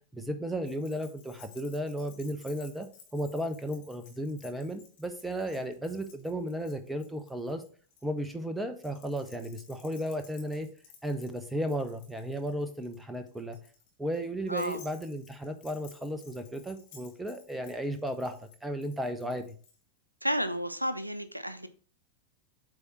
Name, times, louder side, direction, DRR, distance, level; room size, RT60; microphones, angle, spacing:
voice 1, 0.1-2.9 3.1-7.6 8.0-10.7 11.0-13.6 14.0-19.6, equal, 5° right, 0.8 m, -34 dB
Keys jangling, 0.6-8.0 8.8-19.8, left 6 dB, 50° left, 1.4 m, -56 dB
voice 2, 14.5-14.8 20.2-21.7, equal, 90° right, 0.5 m, -31 dB
8.1 x 3.6 x 4.1 m
figure-of-eight pair, 90°, 0 cm